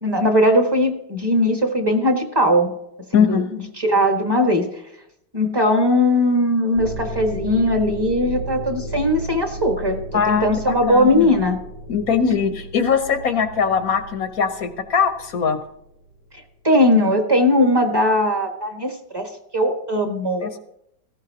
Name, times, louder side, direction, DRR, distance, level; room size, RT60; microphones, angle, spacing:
voice 1, 0.0-2.7 3.1-3.4 3.8-4.6 5.3-10.0 10.3-11.6 16.6-20.5, left 1 dB, 15° right, 3 dB, 1.3 m, -19 dB
voice 2, 3.1-3.5 10.1-11.3 11.9-15.6 20.4-20.6, left 6 dB, 55° left, 7 dB, 1.1 m, -21 dB
sound 1, 6.7-16.2, right 1 dB, 55° right, 3.6 m, -35 dB
17.5 x 15.5 x 2.8 m, 0.78 s
omnidirectional pair, 2.3 m